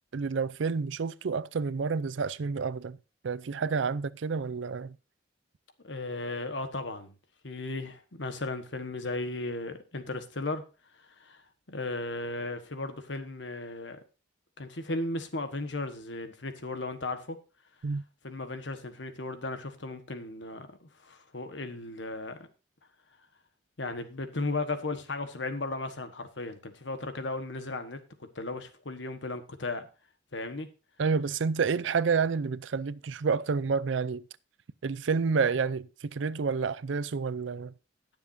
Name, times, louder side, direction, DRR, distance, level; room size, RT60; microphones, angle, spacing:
voice 1, 0.1-3.0 3.2-5.0 17.8-18.0 31.0-34.2 34.8-37.7, right 5 dB, 80° right, 0.5 m, -29 dB
voice 2, 5.8-7.1 7.4-10.6 11.0-11.4 11.7-14.0 14.6-17.4 18.2-22.4 23.8-28.0 28.3-29.9 30.3-30.7, left 2 dB, 75° left, 1.4 m, -35 dB
18.5 x 7.0 x 2.7 m
head